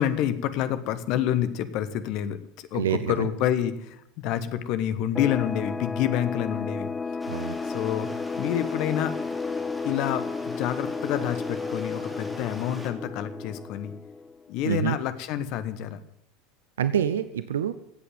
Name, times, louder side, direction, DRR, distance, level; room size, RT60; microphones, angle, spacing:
voice 1, 0.0-6.9 7.7-9.2 9.8-13.9 14.5-16.0, left 10 dB, 50° left, 12 dB, 1.2 m, -28 dB
voice 2, 2.7-3.3 7.3-7.6 14.6-15.0 16.8-17.7, right 9 dB, 70° right, 13 dB, 0.6 m, -26 dB
sound 1, 5.1-14.5, left 4 dB, 15° left, 0.5 m, -33 dB
Stream, 7.2-12.9, equal, ahead, 2.8 m, -43 dB
15.5 x 8.4 x 9.1 m, 0.73 s
figure-of-eight pair, 75°, 0 cm